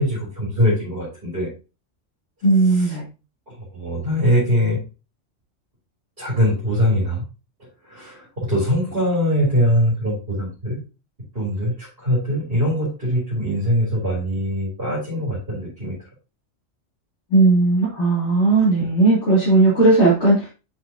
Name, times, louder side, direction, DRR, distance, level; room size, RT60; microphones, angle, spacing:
voice 1, 0.0-1.5 2.7-2.9 3.7-4.8 6.2-7.3 7.9-10.8 11.3-15.9, equal, 45° right, -7 dB, 3.6 m, -22 dB
voice 2, 2.4-3.0 17.3-20.5, right 2 dB, 65° left, -8 dB, 3.1 m, -16 dB
7.8 x 6.1 x 2.8 m, 0.30 s
omnidirectional pair, 1.3 m